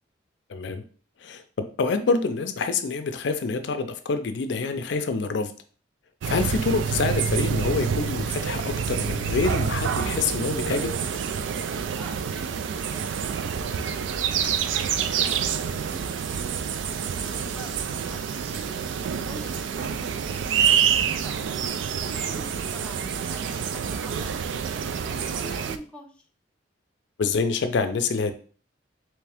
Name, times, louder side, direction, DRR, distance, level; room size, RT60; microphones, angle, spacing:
voice 1, 0.5-0.8 1.2-5.5 6.3-10.9 27.2-28.3, left 4 dB, 65° left, 0.4 m, -26 dB
sound 1, 6.2-25.8, right 7 dB, 80° right, 0.3 m, -27 dB
voice 2, 12.0-16.6 17.0-19.0 19.3-21.4 22.0-26.3, equal, 5° left, 0.5 m, -45 dB
3.5 x 3.1 x 3.4 m
head